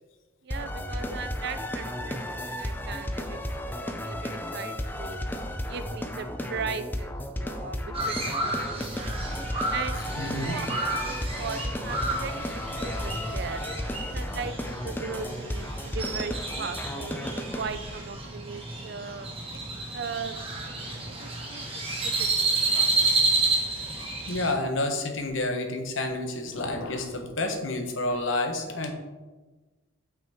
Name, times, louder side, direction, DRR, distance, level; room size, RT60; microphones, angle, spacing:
voice 1, 0.4-5.3 5.6-9.1 9.7-10.7 11.1-12.4 12.8-13.6 14.1-19.6 19.9-20.5 21.2-23.0, right 5 dB, 50° right, 11 dB, 0.4 m, -38 dB
sound 1, 0.5-17.6, left 1 dB, 10° left, 0.4 m, -34 dB
Crow, 7.9-24.5, right 3 dB, 25° right, 1.2 m, -30 dB
voice 2, 9.9-10.5 23.8-23.9 24.3-28.9, left 2 dB, 65° left, 5 dB, 1.0 m, -30 dB
8.2 x 5.8 x 3.5 m, 1.2 s
head